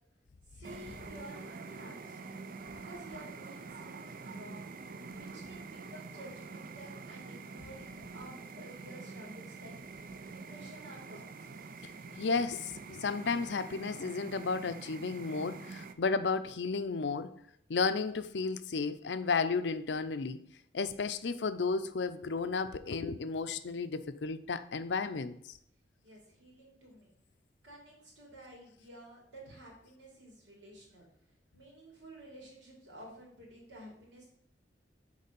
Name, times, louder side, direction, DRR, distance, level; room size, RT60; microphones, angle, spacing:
voice 1, 0.5-2.3 2.7-4.7 5.1-9.8 10.3-11.4 26.0-27.1 27.6-31.1 31.5-34.3, right 1 dB, 80° right, 3.1 m, -52 dB
sound 1, 0.6-15.9, right 4 dB, 50° right, 0.5 m, -46 dB
voice 2, 12.2-17.3 17.7-20.4 20.7-25.5, left 4 dB, 70° left, 0.5 m, -33 dB
6.6 x 4.9 x 5.2 m
head